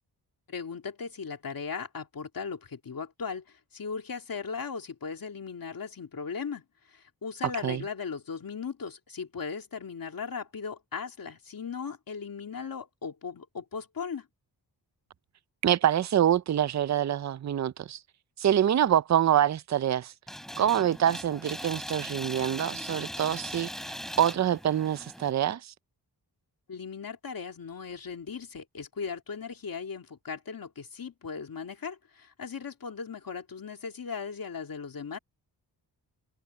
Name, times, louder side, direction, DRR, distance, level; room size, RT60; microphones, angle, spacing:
voice 1, 0.5-14.3 26.7-35.2, left 5 dB, 55° left, 2.4 m, -38 dB
voice 2, 15.6-18.0 18.4-20.1 20.6-23.7 24.2-25.6, right 10 dB, 45° right, 0.4 m, -25 dB
sound 1, 20.3-25.3, equal, ahead, 3.4 m, -39 dB
wide cardioid pair, 175°, 42 cm